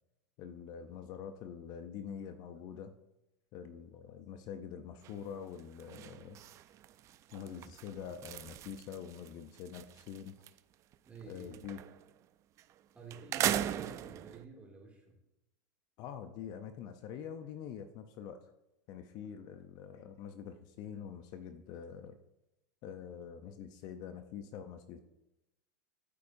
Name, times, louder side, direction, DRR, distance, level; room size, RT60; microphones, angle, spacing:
voice 1, 0.4-2.9 3.5-6.5 7.3-10.4 11.2-11.8 16.0-18.4 18.9-22.2 22.8-25.0, left 8 dB, 45° left, 9 dB, 0.6 m, -45 dB
sound 1, 5.0-5.3 5.6-10.6 10.9-12.1 12.6-12.7 13.1-14.4, right 11 dB, 35° right, 0.4 m, -39 dB
voice 2, 11.1-11.5 12.9-15.2, right 4 dB, 15° right, -1 dB, 2.3 m, -51 dB
13.0 x 4.7 x 2.6 m, 0.93 s
supercardioid pair, 130°, 9 cm